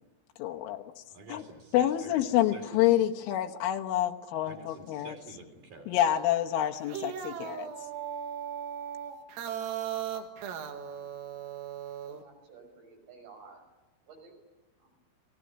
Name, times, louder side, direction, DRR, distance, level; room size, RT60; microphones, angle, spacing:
voice 1, 0.4-1.0 1.3-1.4 1.7-5.1 5.9-7.7, left 12 dB, 80° left, 4 dB, 3.6 m, -28 dB
voice 2, 1.1-2.9 4.4-6.0, right 3 dB, 45° right, 4 dB, 5.4 m, -49 dB
sound 1, 6.7-12.2, right 9 dB, 90° right, 4.6 m, -37 dB
voice 3, 12.1-13.6 14.1-14.3 14.8-14.9, right 4 dB, 70° right, 2 dB, 8.7 m, -53 dB
28.5 x 19.0 x 10.0 m, 1.1 s
omnidirectional pair, 5.8 m